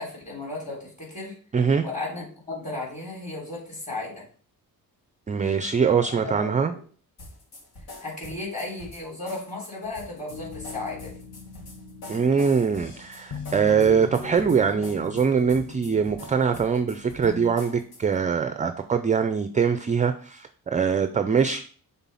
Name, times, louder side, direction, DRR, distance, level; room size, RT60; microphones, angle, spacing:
voice 1, 0.0-1.4 1.8-4.2 6.1-6.8 8.0-11.2, left 2 dB, 20° left, -3 dB, 3.4 m, -35 dB
voice 2, 1.5-1.9 5.3-6.7 12.1-21.6, right 6 dB, 20° right, 9 dB, 0.4 m, -23 dB
sound 1, 7.2-18.2, left 2 dB, 85° left, 2.3 m, -45 dB
sound 2, 10.3-17.5, left 3 dB, 40° left, 1.1 m, -40 dB
6.1 x 3.7 x 5.5 m, 0.43 s
wide cardioid pair, 145°, 36 cm